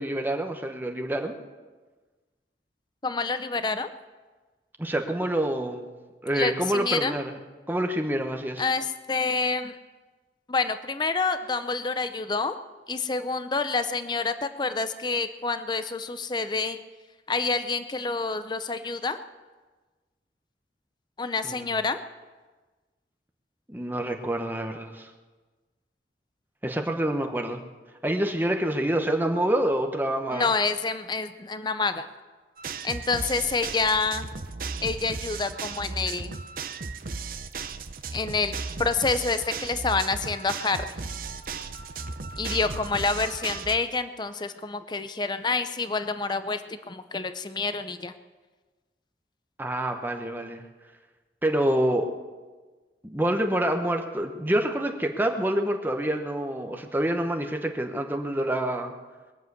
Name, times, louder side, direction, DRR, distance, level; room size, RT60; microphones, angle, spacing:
voice 1, 0.0-1.4 4.8-5.9 6.2-7.4 7.7-8.7 21.4-21.7 23.7-25.1 26.6-27.6 28.0-30.5 49.6-50.6 51.4-52.1 53.0-58.9, right 1 dB, 10° right, 4 dB, 0.9 m, -27 dB
voice 2, 3.0-3.9 6.3-7.2 8.6-9.8 10.5-12.6 12.9-16.8 17.3-19.2 21.2-22.0 30.3-32.1 32.8-34.3 34.8-36.3 38.1-38.5 38.8-40.9 42.4-48.1, left 4 dB, 25° left, 11 dB, 0.6 m, -28 dB
sound 1, 32.6-43.8, right 4 dB, 50° right, 0.7 m, -36 dB
21.5 x 7.5 x 8.1 m, 1.3 s
head